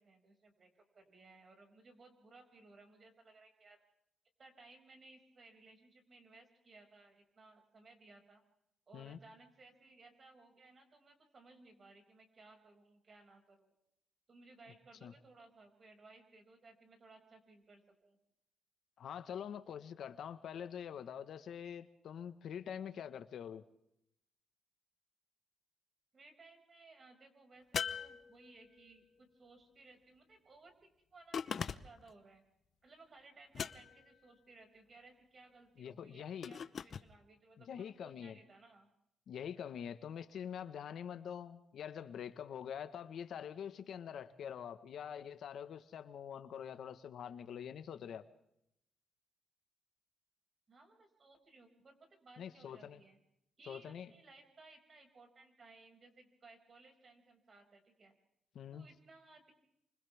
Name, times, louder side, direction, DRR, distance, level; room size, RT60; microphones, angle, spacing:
voice 1, 0.0-3.8 4.4-8.4 8.9-13.7 14.3-18.2 26.1-32.4 32.8-38.9 50.7-53.2 53.6-58.1 58.7-59.5, right 3 dB, 40° right, 6.4 m, -61 dB
voice 2, 19.0-23.6 35.8-36.5 37.7-38.4 39.3-48.2 52.4-53.0 53.7-54.1 58.5-58.9, left 8 dB, 70° left, 1.4 m, -45 dB
sound 1, 27.7-28.8 31.3-32.1 33.5-34.2 36.4-37.1, left 7 dB, 55° left, 0.9 m, -40 dB
29.0 x 25.5 x 3.6 m
cardioid pair, 100°, 0 cm